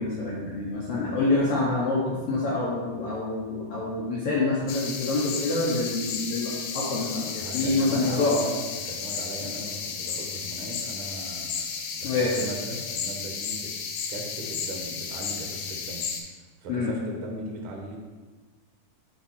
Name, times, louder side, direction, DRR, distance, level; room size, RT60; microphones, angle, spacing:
voice 1, 0.0-8.4 12.0-12.4 16.7-16.9, left 3 dB, 70° left, -5 dB, 1.4 m, -26 dB
sound 1, 4.7-16.2, left 6 dB, 90° left, 2.3 m, -33 dB
voice 2, 7.4-13.7 14.1-16.3 16.6-18.0, right 2 dB, 75° right, 0 dB, 1.2 m, -38 dB
6.9 x 3.7 x 4.3 m, 1.3 s
omnidirectional pair, 3.7 m